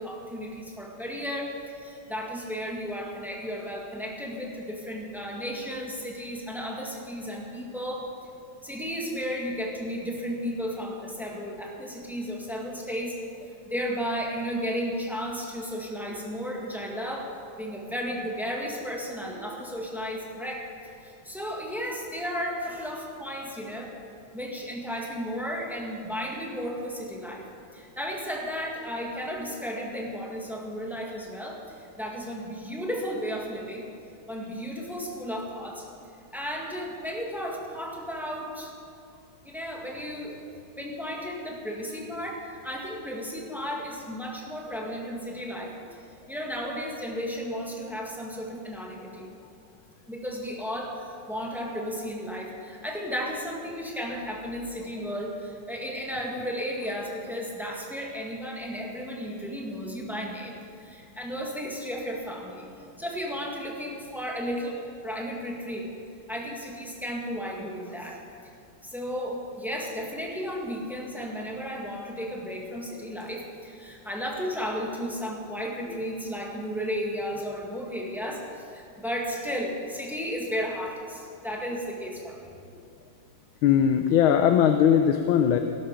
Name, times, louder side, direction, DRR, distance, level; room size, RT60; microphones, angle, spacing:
voice 1, 0.0-8.1 8.6-13.2 13.7-23.9 24.3-33.9 34.3-35.9 36.3-38.7 39.4-40.4 40.8-49.3 50.1-62.7 63.0-65.9 66.3-68.2 68.8-82.5, equal, ahead, -1 dB, 1.7 m, -34 dB
voice 2, 83.6-85.6, left 9 dB, 80° left, 6 dB, 1.5 m, -20 dB
17.5 x 12.5 x 5.1 m, 2.5 s
omnidirectional pair, 2.3 m